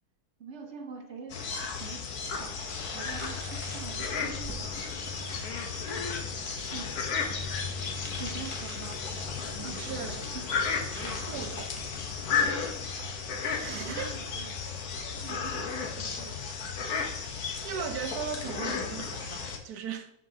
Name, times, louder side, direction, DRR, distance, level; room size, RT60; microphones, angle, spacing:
voice 1, 0.4-1.4 1.8-2.0 2.3-4.6 6.7-6.9 8.2-9.1 9.6-10.4 11.5-11.6 13.7-14.6 15.2-16.9, right 5 dB, 50° right, 1.2 m, -44 dB
sound 1, 1.3-19.6, left 5 dB, 75° left, 1.5 m, -34 dB
sound 2, 2.2-12.7, equal, 20° left, 1.4 m, -46 dB
sound 3, 2.4-18.8, left 3 dB, 35° left, 1.8 m, -46 dB
voice 2, 9.6-10.2 10.9-11.7 13.5-14.2 17.4-20.1, right 7 dB, 80° right, 1.3 m, -38 dB
11.5 x 5.3 x 2.8 m
omnidirectional pair, 1.6 m